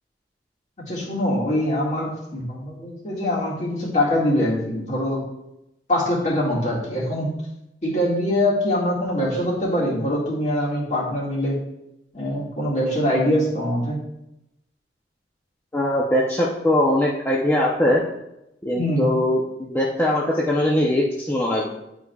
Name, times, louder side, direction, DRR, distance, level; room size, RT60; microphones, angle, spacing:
voice 1, 0.9-5.2 5.9-7.3 7.8-11.6 12.1-14.0 18.8-19.1, left 1 dB, 40° left, -4 dB, 1.9 m, -23 dB
voice 2, 15.7-18.0 18.6-21.7, left 1 dB, 10° left, -5 dB, 0.6 m, -21 dB
10.0 x 4.8 x 2.3 m, 0.86 s
head